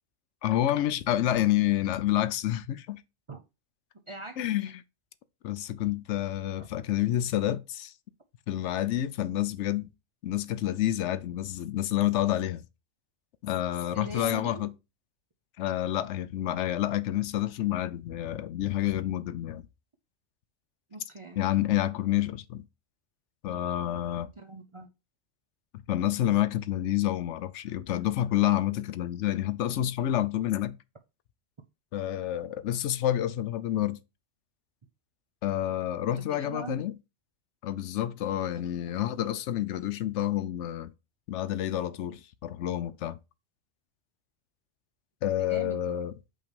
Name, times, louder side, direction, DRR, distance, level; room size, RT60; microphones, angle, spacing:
voice 1, 0.4-3.0 4.4-4.8 5.4-7.9 8.5-9.9 10.2-12.6 13.4-14.7 15.6-19.6 21.4-22.6 23.4-24.3 25.7-30.8 31.9-34.0 35.4-36.9 37.6-40.9 41.3-43.2 45.2-46.1, left 13 dB, 85° left, 0.9 m, -28 dB
voice 2, 4.1-4.7 6.6-6.7 13.9-14.7 20.9-21.4 24.4-24.9 36.1-36.9 45.4-46.0, right 3 dB, 35° right, 0.5 m, -42 dB
5.4 x 3.3 x 5.2 m
omnidirectional pair, 1.2 m